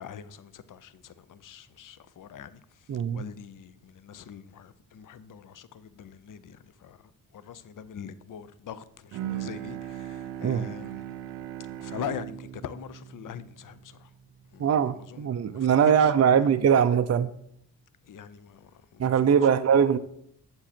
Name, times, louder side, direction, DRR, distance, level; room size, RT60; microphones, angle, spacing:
voice 1, 0.0-11.0 11.8-14.1 14.5-16.5 18.0-19.4, left 8 dB, 50° left, 0.6 m, -42 dB
voice 2, 2.9-3.2 10.4-10.7 14.6-17.3 19.0-20.0, right 7 dB, 40° right, 0.5 m, -22 dB
Bowed string instrument, 9.1-14.5, right 11 dB, 85° right, 0.6 m, -38 dB
7.7 x 7.0 x 4.3 m
cardioid pair, 55°, 41 cm